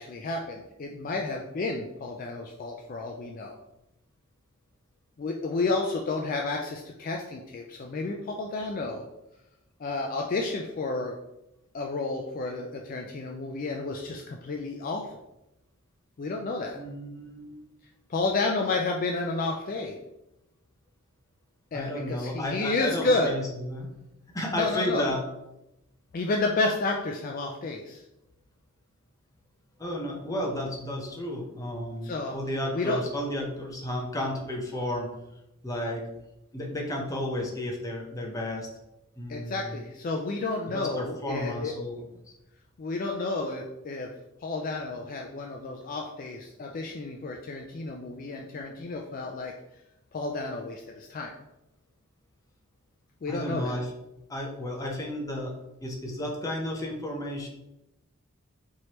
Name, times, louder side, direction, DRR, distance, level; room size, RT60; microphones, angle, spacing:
voice 1, 0.0-3.5 5.2-9.0 9.8-11.1 11.7-15.1 16.2-16.8 18.1-20.0 21.7-23.3 24.5-25.0 26.1-28.0 32.0-32.3 32.7-33.0 39.3-41.7 42.8-44.1 44.4-49.5 50.1-51.3 53.2-53.7, left 3 dB, 40° left, 1 dB, 0.3 m, -31 dB
voice 2, 16.7-17.6 21.7-23.9 24.3-25.2 29.8-35.1 35.6-36.0 36.5-38.7 39.2-39.8 40.7-42.0 53.3-53.9 54.3-55.5 55.8-57.5, left 1 dB, 15° left, 0 dB, 0.7 m, -32 dB
4.5 x 3.2 x 2.9 m, 0.90 s
head